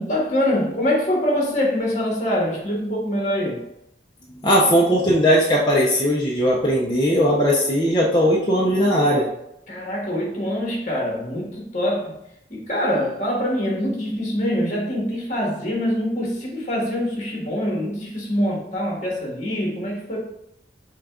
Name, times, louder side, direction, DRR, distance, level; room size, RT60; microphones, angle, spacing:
voice 1, 0.0-3.6 9.7-12.2 12.5-20.2, left 1 dB, 45° left, -2 dB, 1.5 m, -24 dB
voice 2, 4.4-9.3, equal, 25° left, -4 dB, 0.6 m, -18 dB
6.1 x 2.3 x 3.6 m, 0.79 s
head